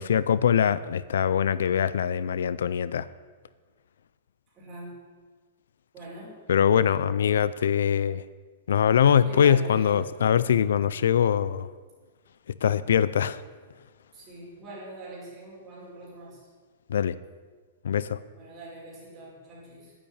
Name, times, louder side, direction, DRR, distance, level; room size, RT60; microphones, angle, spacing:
voice 1, 0.0-3.1 6.5-8.2 8.7-11.7 12.6-13.4 16.9-17.1 17.8-18.2, left 8 dB, 85° left, 17 dB, 0.5 m, -23 dB
voice 2, 4.5-5.0 5.9-6.4 9.1-10.0 14.1-16.4 18.3-19.9, right 1 dB, 15° right, -6 dB, 5.3 m, -43 dB
10.5 x 10.0 x 8.9 m, 1.5 s
supercardioid pair, 170°, 0 cm